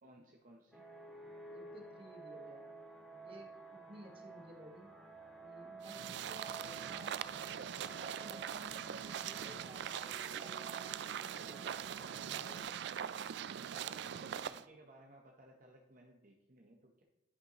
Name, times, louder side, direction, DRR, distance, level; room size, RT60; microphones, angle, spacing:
voice 1, 0.0-0.9 12.2-12.8 13.7-17.0, right 1 dB, 45° right, 0 dB, 0.8 m, -59 dB
sound 1, 0.7-12.6, right 2 dB, ahead, 2.2 m, -53 dB
voice 2, 1.4-2.7 3.1-4.9 5.4-7.7 8.0-10.7 11.3-12.0, equal, 30° right, 1 dB, 1.3 m, -56 dB
sound 2, 5.8-14.6, right 9 dB, 65° right, 0.3 m, -42 dB
11.0 x 5.5 x 2.9 m, 1.1 s
head